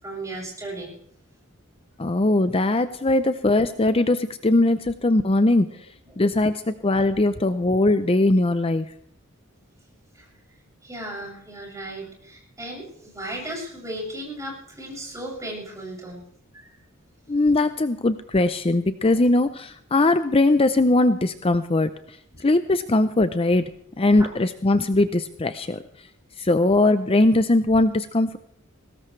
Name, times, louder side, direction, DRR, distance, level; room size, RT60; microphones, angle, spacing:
voice 1, 0.0-0.9 6.1-6.2 10.1-10.3 10.8-16.2 16.5-16.8 19.0-19.2 22.3-22.4 24.2-24.3, right 1 dB, 15° right, -3 dB, 7.0 m, -36 dB
voice 2, 2.0-5.7 6.2-8.9 17.3-21.9 22.4-23.7 24.0-25.8 26.4-28.4, left 2 dB, 25° left, 11 dB, 0.6 m, -20 dB
21.5 x 18.0 x 3.3 m, 0.68 s
head